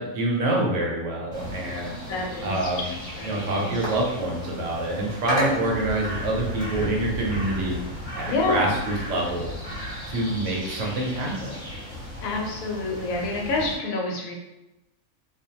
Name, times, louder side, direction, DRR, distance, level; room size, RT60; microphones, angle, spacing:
voice 1, 0.0-2.0 2.4-2.8 3.2-7.8 8.2-9.5 10.1-11.5, right 1 dB, 70° right, -2 dB, 0.9 m, -26 dB
sound 1, 1.3-13.7, equal, 45° left, 0.9 m, -34 dB
voice 2, 2.1-3.7 8.3-8.7 12.2-14.3, left 3 dB, 75° left, -1 dB, 1.0 m, -28 dB
2.5 x 2.2 x 2.7 m, 0.97 s
omnidirectional pair, 1.5 m